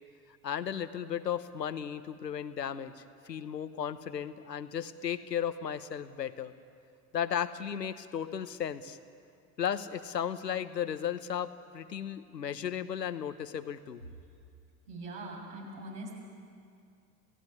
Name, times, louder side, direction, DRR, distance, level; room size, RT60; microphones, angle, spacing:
voice 1, 0.4-6.5 7.1-9.0 9.6-14.0, left 9 dB, 80° left, 13 dB, 1.1 m, -35 dB
voice 2, 14.9-16.2, right 2 dB, 65° right, -2 dB, 7.3 m, -42 dB
29.0 x 17.0 x 9.6 m, 2.4 s
figure-of-eight pair, 75°, 49 cm